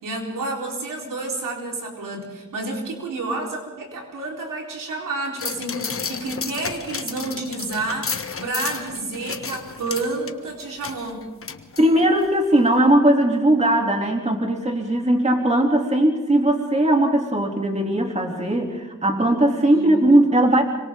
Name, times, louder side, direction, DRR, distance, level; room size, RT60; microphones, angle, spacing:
voice 1, 0.0-11.3 19.7-19.9, right 2 dB, 85° right, 0 dB, 4.6 m, -30 dB
sound 1, 5.4-12.3 12.7-12.8, left 5 dB, 45° left, 1.4 m, -33 dB
voice 2, 11.8-20.6, right 1 dB, 20° right, 2 dB, 3.2 m, -19 dB
26.5 x 25.0 x 3.9 m, 1.2 s
cardioid pair, 85°, 32 cm